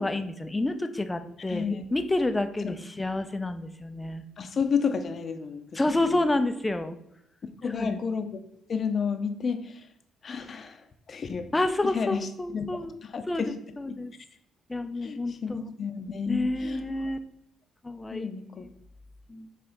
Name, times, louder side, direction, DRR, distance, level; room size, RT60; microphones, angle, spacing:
voice 1, 0.0-4.2 5.7-7.0 7.7-8.0 11.5-13.0 13.3-14.1 14.7-15.6 16.3-17.2 17.8-18.3 19.3-19.5, left 2 dB, 15° left, 9 dB, 0.6 m, -29 dB
voice 2, 1.4-1.9 2.6-2.8 4.4-5.8 6.1-6.2 7.6-8.3 8.7-9.8 10.2-10.8 11.1-11.5 11.8-13.5 13.9-14.0 15.0-17.1 18.1-18.6, left 6 dB, 45° left, 8 dB, 0.8 m, -31 dB
6.9 x 3.3 x 5.1 m, 0.79 s
cardioid pair, 90°, 0 cm